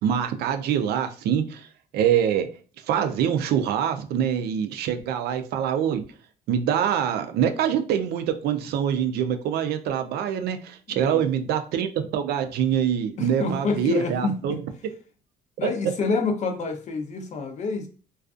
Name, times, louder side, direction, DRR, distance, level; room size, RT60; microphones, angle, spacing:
voice 1, 0.0-1.7 1.9-2.5 2.9-6.0 6.5-14.6, right 9 dB, 70° right, 8 dB, 0.4 m, -24 dB
voice 2, 10.9-11.3 13.2-14.6 15.6-17.9, left 4 dB, 45° left, 6 dB, 0.5 m, -27 dB
2.4 x 2.3 x 2.3 m, 0.38 s
cardioid pair, 110°, 17 cm